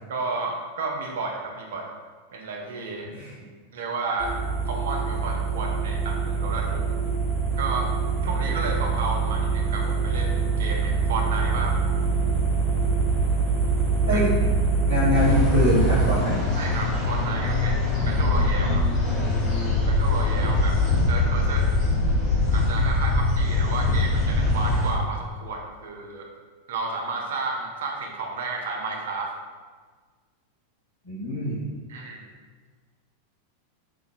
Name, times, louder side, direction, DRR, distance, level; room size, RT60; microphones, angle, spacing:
voice 1, 0.1-1.9 2.3-3.1 3.7-4.3 4.7-6.9 7.6-7.9 8.2-11.8 14.1-14.2 16.5-18.8 19.6-20.8 21.1-21.7 22.5-26.3 26.7-29.3 31.9-32.2, right 3 dB, 60° right, 0 dB, 0.5 m, -32 dB
sound 1, 4.2-16.2, right 4 dB, 5° left, 1.2 m, -24 dB
voice 2, 14.8-16.5 31.0-31.6, left 1 dB, 65° left, -14 dB, 1.5 m, -24 dB
sound 2, 15.1-24.9, left 2 dB, 30° left, 0.9 m, -23 dB
3.6 x 2.8 x 2.5 m, 1.5 s
figure-of-eight pair, 90°, 0 cm